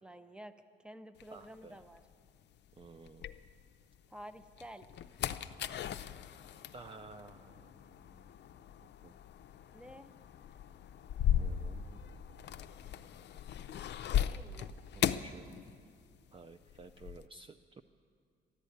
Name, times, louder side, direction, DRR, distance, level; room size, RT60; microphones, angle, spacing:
voice 1, 0.0-2.0 4.1-4.9 9.7-10.1 14.1-14.7, equal, 5° right, 10 dB, 0.8 m, -51 dB
sound 1, 1.2-4.0 4.4-16.2 16.4-17.3, left 10 dB, 60° left, 0.5 m, -38 dB
voice 2, 1.3-1.8 2.8-3.2 6.7-8.2 9.0-9.1 11.4-12.0 14.9-15.5 16.3-17.8, right 4 dB, 25° right, 9 dB, 0.5 m, -53 dB
13.0 x 11.5 x 8.5 m, 2.2 s
cardioid pair, 90°, 20 cm